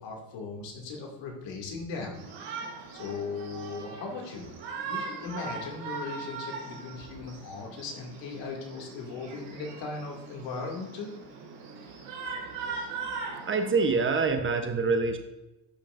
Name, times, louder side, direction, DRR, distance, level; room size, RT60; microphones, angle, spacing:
voice 1, 0.0-2.2 2.9-4.5 4.9-11.1, left 4 dB, 65° left, 0 dB, 2.5 m, -38 dB
Shout, 2.1-14.3, right 4 dB, 70° right, 2.3 m, -40 dB
voice 2, 13.4-15.2, right 4 dB, 25° right, 7 dB, 1.0 m, -25 dB
11.5 x 5.9 x 2.6 m, 0.97 s
supercardioid pair, 105°, 48 cm